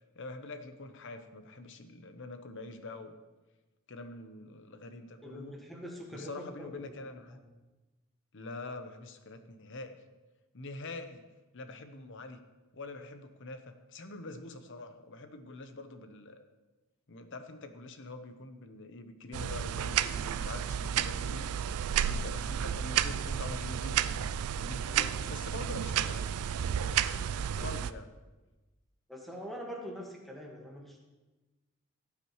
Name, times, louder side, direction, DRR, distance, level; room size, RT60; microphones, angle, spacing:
voice 1, 0.2-3.2 3.9-5.6 6.1-7.4 8.3-10.0 10.5-11.2 11.5-12.4 12.7-16.4 17.1-21.5 21.9-24.2 24.6-26.3 27.6-28.1, left 2 dB, 55° left, 8 dB, 0.9 m, -45 dB
voice 2, 5.2-7.0 7.3-7.4 24.9-25.1 27.5-27.8 29.1-31.0, equal, ahead, -2 dB, 1.7 m, -44 dB
sound 1, 19.3-27.9, right 9 dB, 90° right, 0.4 m, -32 dB
17.0 x 8.4 x 3.2 m, 1.1 s
head